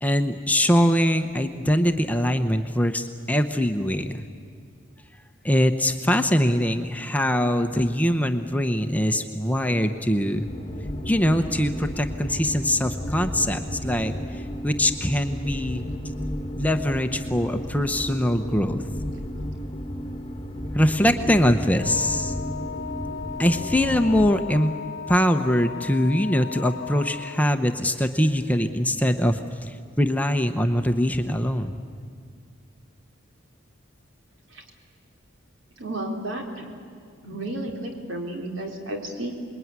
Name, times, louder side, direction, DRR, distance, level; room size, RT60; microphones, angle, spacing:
voice 1, 0.0-4.3 5.4-10.5 11.1-15.8 16.6-18.8 20.7-22.3 23.4-24.7 25.1-31.8, equal, 10° left, 7 dB, 0.8 m, -23 dB
sound 1, 10.3-24.3, equal, 25° left, 1.4 m, -33 dB
Wind instrument woodwind instrument, 21.7-27.5, left 7 dB, 55° left, 0.8 m, -36 dB
voice 2, 35.8-36.6 37.2-39.3, right 1 dB, 70° right, 2 dB, 3.9 m, -32 dB
26.5 x 21.5 x 9.6 m, 2.2 s
head